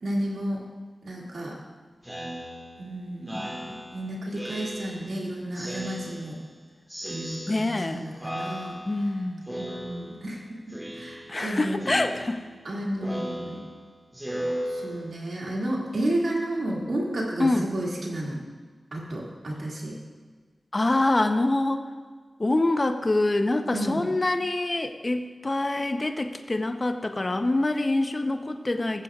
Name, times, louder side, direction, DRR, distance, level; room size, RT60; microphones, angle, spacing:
voice 1, 0.0-0.6 1.0-1.6 2.8-6.4 7.1-8.8 9.6-11.8 12.6-13.6 14.7-18.4 18.9-20.0 23.7-24.0, right 1 dB, 70° right, -3 dB, 2.2 m, -32 dB
Speech synthesizer, 2.0-5.2 5.5-6.6 6.9-7.9 8.2-9.1 9.5-10.4 10.7-11.5 11.8-15.3, equal, 10° right, 1.7 m, -37 dB
voice 2, 7.5-8.1 8.9-9.4 11.3-12.4 17.4-17.7 20.7-21.8 22.4-29.0, left 2 dB, 40° left, 7 dB, 0.7 m, -25 dB
17.0 x 7.6 x 2.4 m, 1.5 s
cardioid pair, 45°, 0 cm